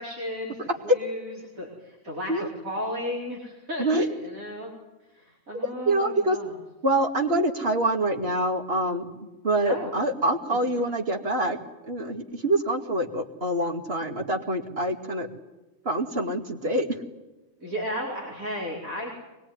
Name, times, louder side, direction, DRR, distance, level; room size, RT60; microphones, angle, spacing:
voice 1, 0.0-4.7 5.1-6.5 9.6-9.9 10.7-10.8 17.6-19.1, equal, 80° right, -3 dB, 5.2 m, -34 dB
voice 2, 5.9-6.4 6.8-9.1 9.4-11.6 11.9-15.3 15.8-16.9, right 1 dB, 45° right, 5 dB, 2.6 m, -25 dB
24.0 x 21.0 x 9.6 m, 1.1 s
omnidirectional pair, 1.4 m